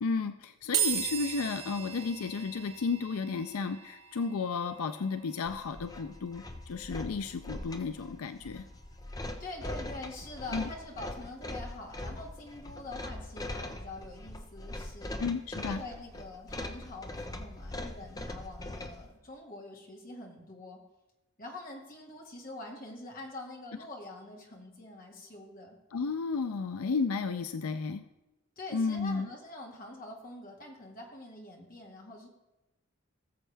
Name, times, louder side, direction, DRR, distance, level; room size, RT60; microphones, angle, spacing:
voice 1, 0.0-8.6 10.5-10.7 15.2-15.8 25.9-28.0 28.7-29.3, left 4 dB, 90° left, 10 dB, 0.5 m, -33 dB
sound 1, 0.7-14.1, right 9 dB, 80° right, 3.9 m, -41 dB
sound 2, 5.4-19.0, left 1 dB, 15° left, 0.6 m, -41 dB
voice 2, 9.4-15.2 15.6-20.8 21.4-25.8 28.6-32.3, left 2 dB, 40° left, -1 dB, 2.0 m, -45 dB
19.0 x 7.2 x 3.4 m, 1.0 s
head